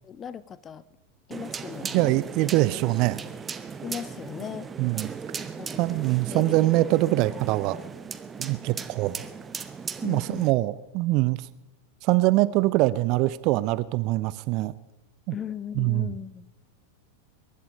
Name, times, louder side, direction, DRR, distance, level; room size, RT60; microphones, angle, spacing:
voice 1, 0.0-0.8 1.3-2.1 3.8-4.7 5.6-5.8 6.3-6.6 10.0-10.5 15.3-16.5, left 8 dB, 25° left, 18 dB, 0.7 m, -37 dB
sound 1, 1.3-10.5, right 5 dB, 20° right, 0.9 m, -37 dB
voice 2, 1.9-3.2 4.8-5.1 5.8-7.8 8.4-9.2 10.0-11.4 12.0-14.7 15.3-15.4 15.7-16.1, right 18 dB, 40° right, 18 dB, 0.6 m, -23 dB
22.5 x 11.0 x 5.2 m, 0.98 s
figure-of-eight pair, 90°, 0 cm